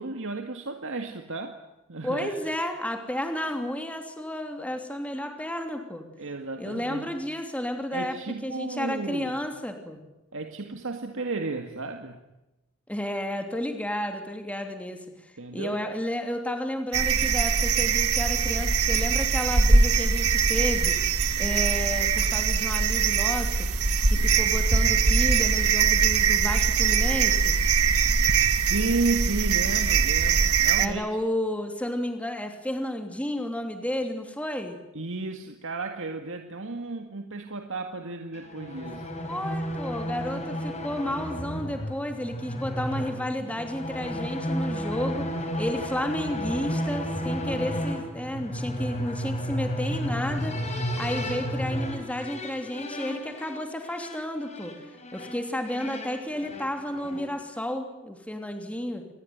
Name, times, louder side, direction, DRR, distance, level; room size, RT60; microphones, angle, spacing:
voice 1, 0.0-1.6 1.9-2.4 6.2-7.1 7.9-9.4 10.3-12.2 15.4-15.8 28.4-31.0 34.9-39.1, right 3 dB, 65° right, 5 dB, 2.1 m, -33 dB
voice 2, 2.0-6.1 6.6-8.2 8.4-10.0 12.9-21.0 21.4-23.7 24.1-27.6 30.8-34.8 39.2-45.3 45.6-50.6 51.0-54.7 55.1-59.0, left 1 dB, 5° left, 5 dB, 3.0 m, -32 dB
sound 1, 16.9-30.9, right 5 dB, 85° right, 1.8 m, -22 dB
sound 2, 38.3-57.4, equal, 30° left, 4.9 m, -33 dB
28.0 x 20.5 x 9.5 m, 0.99 s
head